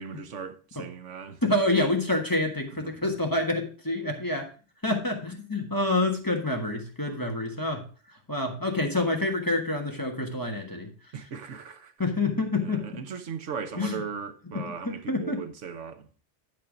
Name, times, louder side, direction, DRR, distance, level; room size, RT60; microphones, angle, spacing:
voice 1, 0.0-1.4 2.8-2.9 11.1-11.9 12.6-16.1, right 6 dB, 85° right, 1.3 m, -38 dB
voice 2, 1.4-4.5 4.8-7.8 8.3-10.9 12.0-12.9 13.8-14.0 14.5-15.4, left 2 dB, 15° left, 1.5 m, -27 dB
10.5 x 4.5 x 5.0 m
omnidirectional pair, 1.2 m